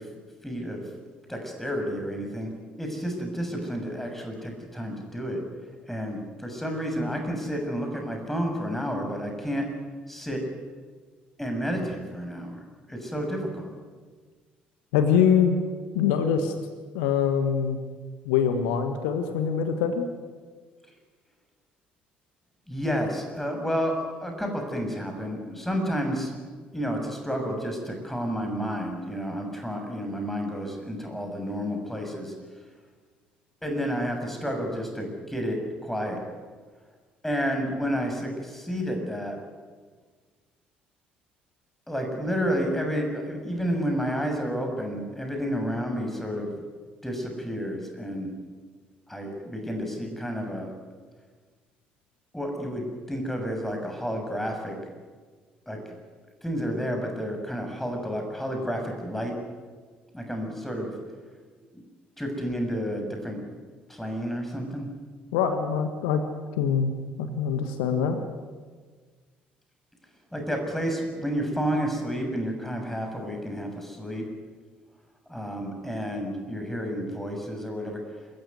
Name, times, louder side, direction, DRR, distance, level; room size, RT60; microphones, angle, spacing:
voice 1, 0.4-0.8 1.3-2.5 2.8-5.4 5.9-9.7 10.1-10.4 11.4-13.7 22.7-23.9 24.2-26.3 26.7-32.3 33.6-36.2 37.2-39.4 41.9-46.5 47.0-48.3 49.1-50.7 52.3-54.7 55.7-55.8 56.4-59.3 60.1-60.9 61.7-61.8 62.2-63.4 63.9-64.9 70.3-74.2 75.3-78.0, equal, 5° left, 3 dB, 7.0 m, -30 dB
voice 2, 14.9-15.6 15.9-16.5 16.9-17.8 18.2-20.0 65.3-66.2 66.6-66.9 67.2-68.2, left 7 dB, 65° left, 7 dB, 1.5 m, -24 dB
26.5 x 14.5 x 9.6 m, 1.5 s
figure-of-eight pair, 50°, 5 cm